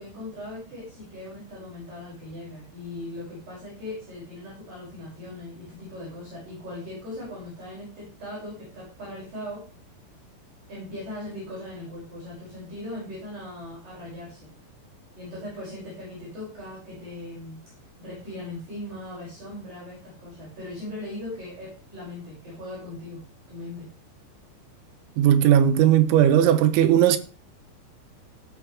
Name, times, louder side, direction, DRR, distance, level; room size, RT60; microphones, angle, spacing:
voice 1, 0.0-9.7 10.7-14.5 15.1-17.6 18.0-23.9, left 1 dB, 50° right, 8.2 m, -39 dB
voice 2, 25.2-27.2, right 10 dB, 85° right, 3.4 m, -17 dB
18.0 x 7.8 x 3.5 m
omnidirectional pair, 5.2 m